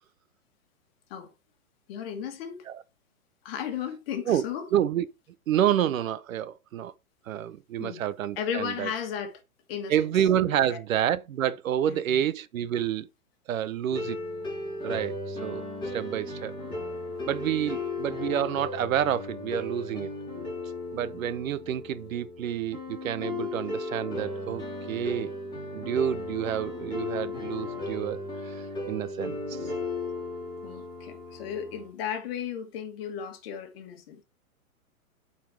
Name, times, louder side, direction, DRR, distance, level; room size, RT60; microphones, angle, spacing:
voice 1, 1.9-2.7 3.5-4.7 7.8-8.0 8.4-9.4 9.7-9.9 10.7-10.8 11.9-12.2 30.6-34.2, left 8 dB, 40° left, 1.7 m, -35 dB
voice 2, 4.7-5.1 5.5-6.9 7.3-8.9 9.9-13.1 13.5-14.2 14.8-16.6 17.3-20.1 20.9-24.6 24.9-25.3 25.7-29.7, right 10 dB, 65° right, 0.8 m, -29 dB
sound 1, 13.9-31.9, left 2 dB, 10° left, 3.4 m, -36 dB
8.4 x 4.4 x 4.5 m
hypercardioid pair, 140°, 43 cm